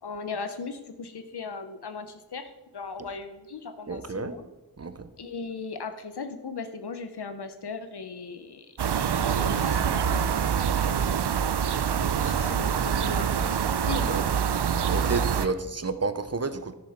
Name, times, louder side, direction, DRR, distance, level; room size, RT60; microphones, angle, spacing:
voice 1, 0.0-4.4 5.2-8.7 9.1-11.5 11.9-13.3 13.9-14.2 15.4-15.5, left 4 dB, 70° left, 9 dB, 0.8 m, -38 dB
voice 2, 3.9-4.4 4.8-5.0 12.2-12.4 14.1-14.2 14.9-16.7, right 4 dB, 40° right, 12 dB, 0.7 m, -31 dB
sound 1, 8.8-15.5, right 7 dB, 75° right, 0.6 m, -25 dB
10.5 x 6.7 x 5.9 m, 1.1 s
wide cardioid pair, 75°, 41 cm